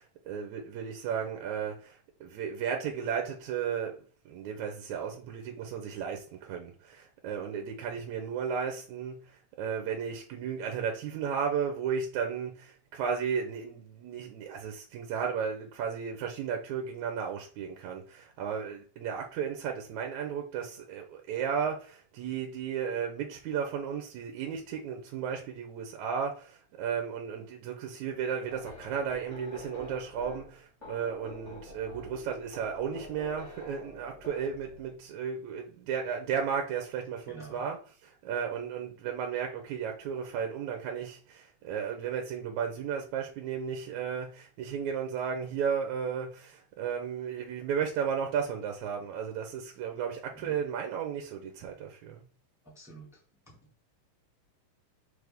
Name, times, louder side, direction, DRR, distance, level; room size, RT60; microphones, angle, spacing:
voice 1, 0.0-4.0 4.3-37.8 38.0-52.2, right 7 dB, 75° right, 2.1 m, -34 dB
sound 1, 28.5-35.0, left 2 dB, 25° left, 2.2 m, -47 dB
voice 2, 37.3-37.6 50.3-50.6 52.6-53.2 53.5-53.6, right 4 dB, ahead, 1.3 m, -47 dB
6.6 x 4.3 x 3.4 m
omnidirectional pair, 3.6 m